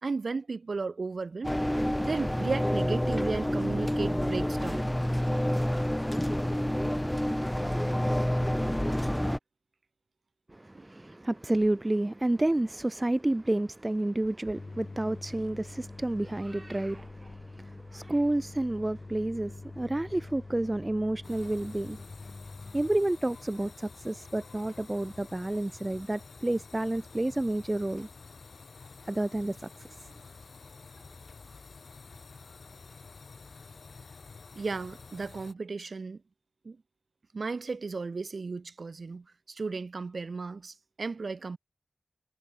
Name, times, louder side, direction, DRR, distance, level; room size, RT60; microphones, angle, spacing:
voice 1, 0.0-1.5 2.0-4.9 10.7-10.8 34.6-36.2 36.6-36.8 37.3-41.6, right 4 dB, 65° right, 2.7 m, -34 dB
sound 1, 1.4-9.4, equal, 10° left, 0.9 m, -28 dB
voice 2, 10.5-22.1 22.7-28.1 29.1-29.9, right 1 dB, 25° right, 0.5 m, -30 dB
sound 2, 14.6-23.0, left 3 dB, 50° left, 1.3 m, -45 dB
sound 3, 21.2-35.5, left 4 dB, 75° left, 1.8 m, -50 dB
wide cardioid pair, 60°, 0 cm